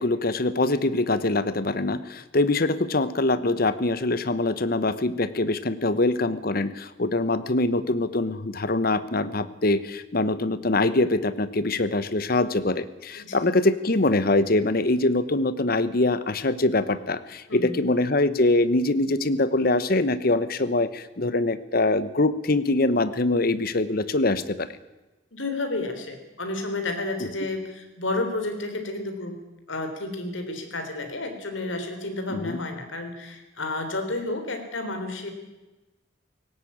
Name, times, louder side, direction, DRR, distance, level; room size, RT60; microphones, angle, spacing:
voice 1, 0.0-24.7 32.3-32.6, left 2 dB, 50° left, 14 dB, 1.1 m, -23 dB
voice 2, 17.5-17.8 25.3-29.4 29.7-35.3, left 2 dB, 80° left, 6 dB, 3.6 m, -31 dB
18.0 x 17.0 x 8.7 m, 1.1 s
head